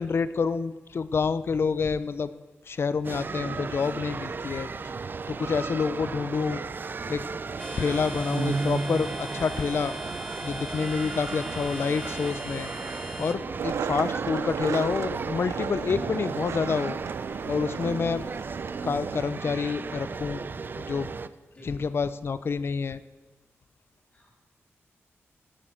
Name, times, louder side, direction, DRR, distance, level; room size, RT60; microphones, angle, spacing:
voice 1, 0.0-2.3 2.7-4.7 5.3-6.6 7.1-7.2 7.8-9.9 10.4-12.7 13.2-17.0 17.5-18.2 18.8-20.4 20.8-21.1 21.6-23.0, left 5 dB, 55° left, 15 dB, 0.7 m, -28 dB
sound 1, 3.0-21.3, right 4 dB, 45° right, 0.6 m, -34 dB
voice 2, 6.9-7.3 21.5-21.9 24.1-24.3, equal, 35° left, -5 dB, 6.2 m, -48 dB
sound 2, 7.6-13.3, equal, ahead, 1.4 m, -40 dB
Skateboard, 13.6-19.2, right 7 dB, 85° right, 0.6 m, -34 dB
17.0 x 8.1 x 7.8 m, 1.2 s
cardioid pair, 85°, 5 cm